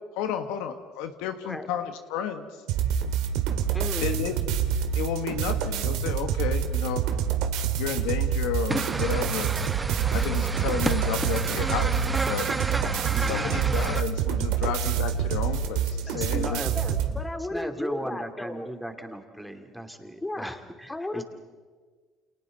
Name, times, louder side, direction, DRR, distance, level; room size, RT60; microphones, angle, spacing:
voice 1, 0.2-2.6 4.0-4.4 4.9-7.0 7.8-9.5 10.1-12.5 13.2-16.6, left 9 dB, 80° left, 8 dB, 1.4 m, -32 dB
sound 1, 2.7-17.1, right 8 dB, 75° right, 2.1 m, -27 dB
voice 2, 3.7-4.2 16.7-18.7 20.2-20.6 20.9-21.2, left 2 dB, 15° left, 8 dB, 2.4 m, -34 dB
sound 2, 8.7-14.0, right 3 dB, 20° right, 0.9 m, -31 dB
voice 3, 13.1-13.7 14.6-14.7 16.1-16.7 17.5-21.2, equal, ahead, 5 dB, 2.8 m, -37 dB
29.5 x 28.0 x 4.1 m, 1.5 s
supercardioid pair, 75°, 0 cm